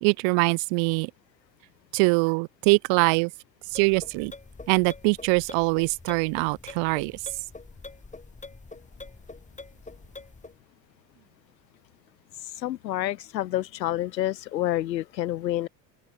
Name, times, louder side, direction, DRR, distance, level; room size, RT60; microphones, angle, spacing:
voice 1, 0.0-1.1 1.9-3.3 3.7-4.3 4.7-7.2, right 36 dB, 65° right, 1.9 m, -23 dB
sound 1, 3.6-10.6, left 3 dB, 15° left, 5.0 m, -45 dB
voice 2, 12.6-15.7, left 13 dB, 85° left, 1.1 m, -28 dB
open air
hypercardioid pair, 70°, 49 cm